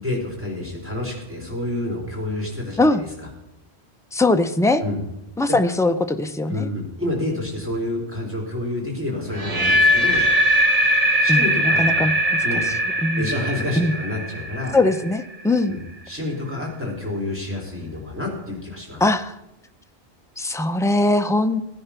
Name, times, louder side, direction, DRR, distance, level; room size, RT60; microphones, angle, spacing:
voice 1, 0.0-3.3 4.8-5.0 6.5-10.2 11.2-12.0 12.4-12.6 13.2-14.8 15.6-15.8 16.1-19.0, left 1 dB, 10° right, -2 dB, 4.0 m, -28 dB
voice 2, 4.1-4.8 5.4-6.7 11.3-12.1 13.0-13.3 13.8-13.9 14.7-15.8 19.0-19.4 20.4-21.6, left 2 dB, 5° left, 8 dB, 0.4 m, -20 dB
sound 1, 9.3-15.3, equal, 35° right, 1.0 m, -20 dB
16.0 x 10.0 x 5.9 m, 0.90 s
omnidirectional pair, 1.1 m